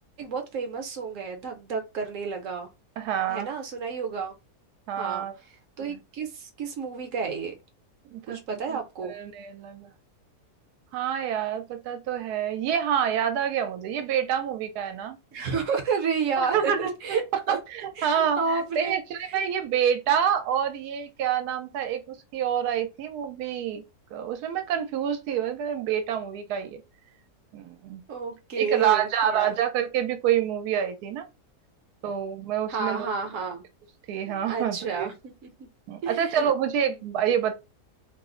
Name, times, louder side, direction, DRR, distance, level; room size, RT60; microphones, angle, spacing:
voice 1, 0.2-2.7 3.3-4.3 5.0-5.3 5.8-7.5 8.3-9.2 15.3-17.6 18.0-19.0 19.3-19.4 28.1-29.6 32.7-33.6 34.3-35.7 36.0-36.5, right 5 dB, 60° right, 1.0 m, -31 dB
voice 2, 3.0-3.5 4.9-5.3 5.9-6.0 8.1-8.4 8.7-8.8 9.1-9.9 10.9-15.2 16.4-16.9 17.5-23.8 24.1-26.8 27.5-28.0 28.6-31.2 32.0-33.1 34.1-35.1 35.9-37.5, right 9 dB, 85° right, 1.1 m, -27 dB
3.2 x 2.0 x 3.7 m
omnidirectional pair, 1.7 m